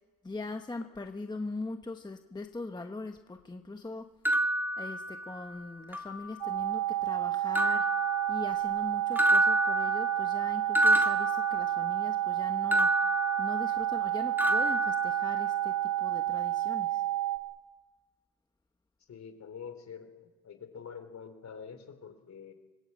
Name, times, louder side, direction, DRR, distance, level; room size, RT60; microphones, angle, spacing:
voice 1, 0.2-4.1 4.8-7.9 8.3-12.9 13.4-17.0, left 3 dB, 10° left, 5 dB, 1.1 m, -41 dB
sound 1, 4.2-5.5 5.9-6.7 7.5-8.8 9.2-12.1 12.7-14.1 14.4-15.7, right 1 dB, 5° right, 2.1 m, -29 dB
sound 2, 6.4-17.4, right 14 dB, 75° right, 3.4 m, -30 dB
voice 2, 19.1-20.1 20.4-22.5, left 6 dB, 45° left, 8 dB, 3.8 m, -45 dB
24.5 x 20.5 x 8.6 m, 1.3 s
cardioid pair, 120°, 37 cm